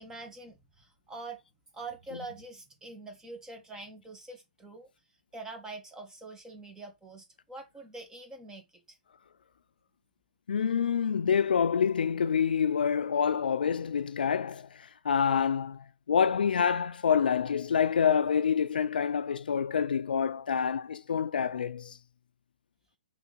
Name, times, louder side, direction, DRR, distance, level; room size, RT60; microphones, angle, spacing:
voice 1, 0.0-1.4 1.7-4.9 5.3-9.0, right 3 dB, 10° right, 1.8 m, -45 dB
voice 2, 10.5-22.0, left 7 dB, 85° left, 0.5 m, -27 dB
5.8 x 3.9 x 4.1 m
hypercardioid pair, 130°, 5 cm